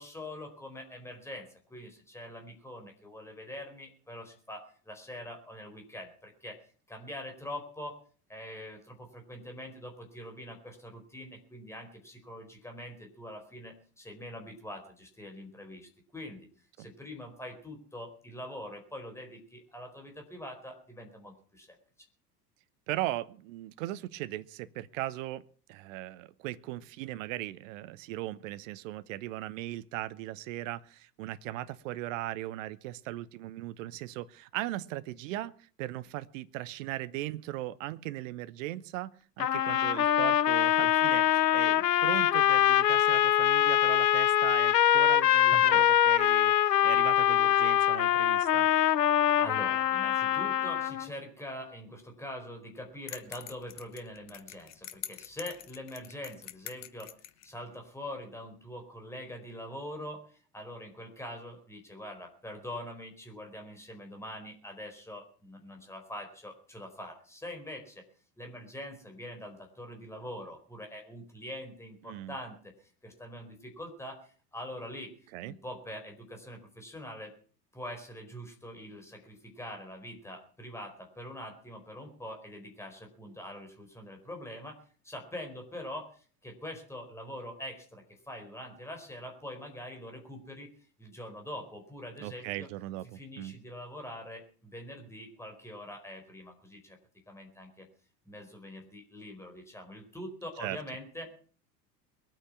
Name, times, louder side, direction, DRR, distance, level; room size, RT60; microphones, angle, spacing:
voice 1, 0.0-6.6 6.9-8.0 8.3-16.5 16.8-21.8 45.5-45.8 49.4-57.1 57.4-68.0 68.4-77.3 77.7-90.7 91.0-92.7 93.1-97.0 97.3-97.9 98.3-101.3, left 1 dB, 5° left, 3 dB, 4.5 m, -44 dB
voice 2, 22.9-25.4 25.7-35.5 35.8-48.7 72.0-72.3 75.3-75.6 92.2-93.5 100.6-100.8, right 15 dB, 50° right, 16 dB, 1.0 m, -38 dB
sound 1, 39.4-51.1, left 11 dB, 75° left, 0.7 m, -24 dB
sound 2, 53.1-57.5, left 12 dB, 35° left, 1.2 m, -45 dB
22.0 x 9.1 x 5.9 m, 0.43 s
figure-of-eight pair, 75°, 49 cm